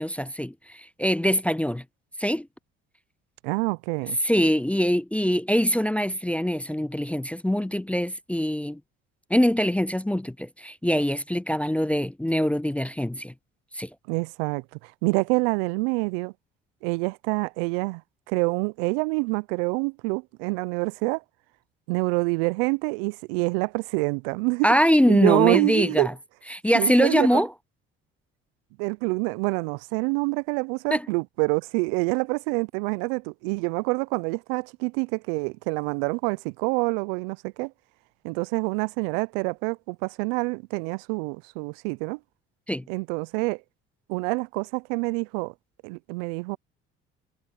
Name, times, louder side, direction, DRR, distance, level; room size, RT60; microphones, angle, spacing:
voice 1, 0.0-1.8 2.2-2.5 4.2-8.8 9.3-13.3 13.7-13.9 24.6-26.1 26.5-27.5 30.9-31.0 42.7-42.8, equal, 5° left, 0.3 m, -23 dB
voice 2, 3.4-4.2 14.1-16.3 16.8-18.0 18.3-21.2 21.9-24.7 25.1-26.1 26.7-27.4 28.8-37.7 38.2-42.2 42.9-43.6 44.1-45.5 45.8-46.6, right 30 dB, 85° right, 0.5 m, -26 dB
hypercardioid pair, 60°, 29 cm